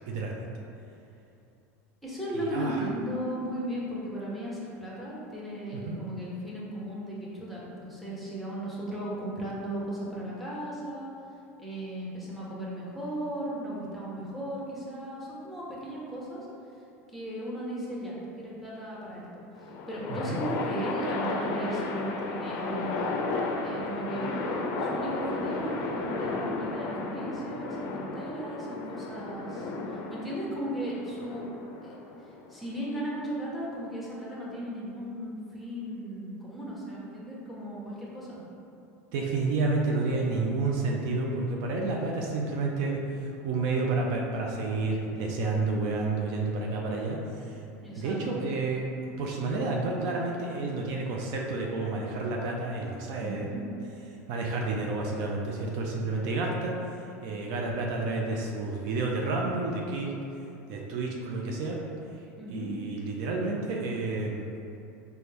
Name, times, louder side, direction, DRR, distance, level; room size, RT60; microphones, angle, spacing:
voice 1, 0.1-0.5 2.3-2.9 5.7-6.0 20.1-20.4 39.1-47.6 48.0-48.8 49.2-53.5 54.3-56.7 57.2-60.1 60.7-61.8 62.5-64.5, right 3 dB, 65° right, -1 dB, 0.5 m, -30 dB
voice 2, 2.0-11.1 11.6-16.5 17.1-23.2 23.6-24.4 24.8-31.4 31.8-32.0 32.5-38.4 47.8-48.4 53.2-53.6 62.4-62.7, right 1 dB, ahead, -7 dB, 1.0 m, -36 dB
sound 1, 19.6-33.0, left 3 dB, 55° left, 0.4 m, -33 dB
4.2 x 2.2 x 3.3 m, 2.8 s
supercardioid pair, 100°, 8 cm